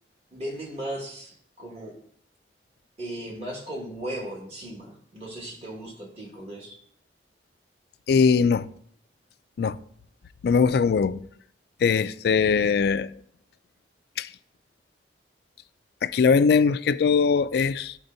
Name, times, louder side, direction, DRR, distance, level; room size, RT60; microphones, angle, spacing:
voice 1, 0.3-2.0 3.0-6.8, right 1 dB, 35° right, 1.8 m, -37 dB
voice 2, 8.1-8.7 9.6-9.8 10.4-11.2 11.8-13.1 14.2-14.3 16.0-18.0, left 5 dB, 60° left, 0.3 m, -21 dB
12.5 x 4.3 x 2.7 m
head